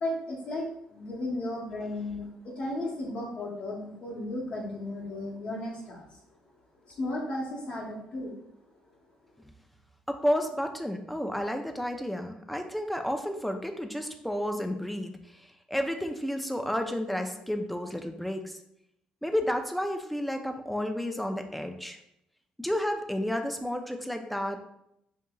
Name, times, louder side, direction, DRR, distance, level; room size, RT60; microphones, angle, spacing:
voice 1, 0.0-6.1 6.8-8.3, left 1 dB, 60° left, -6 dB, 1.0 m, -34 dB
voice 2, 10.1-18.6 19.2-22.0 22.6-24.6, equal, ahead, 5 dB, 0.5 m, -31 dB
5.1 x 2.7 x 2.3 m, 0.78 s
cardioid pair, 80°, 3 cm